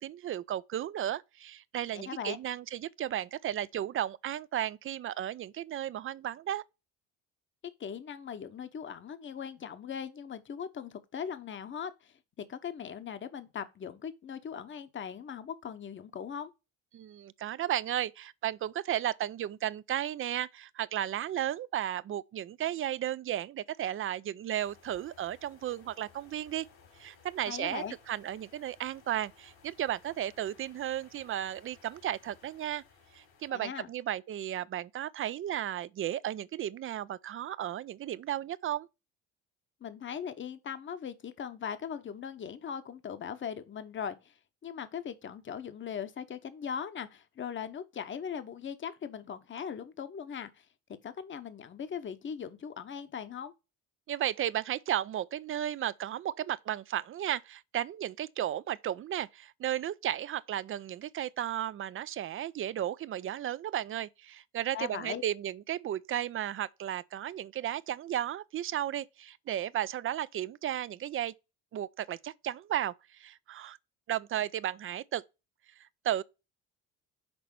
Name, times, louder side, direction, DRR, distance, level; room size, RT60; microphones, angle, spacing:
voice 1, 0.0-6.6 16.9-26.7 27.0-32.8 33.1-38.9 54.1-71.3 71.7-73.8 74.1-75.2 76.0-76.2, right 11 dB, 40° right, 0.5 m, -34 dB
voice 2, 1.9-2.4 7.8-16.5 27.4-27.9 33.5-33.9 39.8-44.3 44.6-50.7 51.0-53.5 64.7-65.2, left 7 dB, 35° left, 0.9 m, -39 dB
sound 1, 24.6-33.5, left 5 dB, 85° left, 3.8 m, -60 dB
6.1 x 4.1 x 5.2 m
supercardioid pair, 80°, 34 cm